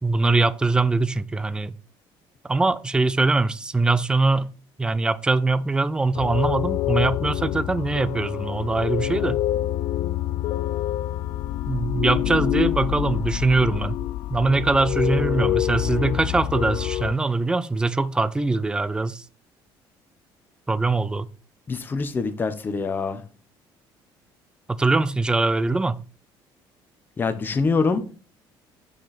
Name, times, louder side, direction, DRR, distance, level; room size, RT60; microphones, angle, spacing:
voice 1, 0.0-1.7 2.4-4.5 4.8-9.4 11.7-14.0 14.3-19.2 20.7-21.3 24.8-26.0, right 3 dB, 10° right, 0.4 m, -22 dB
sound 1, 6.1-17.1, left 13 dB, 60° left, 0.3 m, -26 dB
voice 2, 21.7-23.2 27.2-28.1, left 4 dB, 20° left, 0.8 m, -25 dB
6.2 x 5.1 x 4.2 m
cardioid pair, 150°, 9 cm